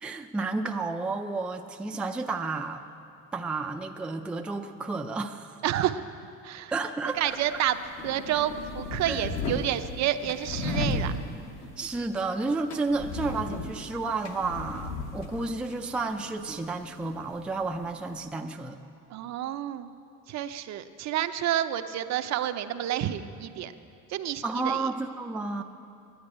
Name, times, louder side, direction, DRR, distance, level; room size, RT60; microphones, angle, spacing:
voice 1, 0.0-2.8 3.3-5.6 6.7-7.6 9.1-9.3 11.6-18.8 24.4-25.6, right 3 dB, 5° right, 4 dB, 0.4 m, -31 dB
voice 2, 5.6-6.0 6.4-6.7 7.1-7.8 8.0-11.1 19.1-19.9 20.3-23.7 24.1-24.8, right 11 dB, 60° right, 10 dB, 0.6 m, -29 dB
sound 1, 7.1-18.2, left 2 dB, 55° left, 1.2 m, -36 dB
10.5 x 9.6 x 9.7 m, 2.5 s
cardioid pair, 155°, 32 cm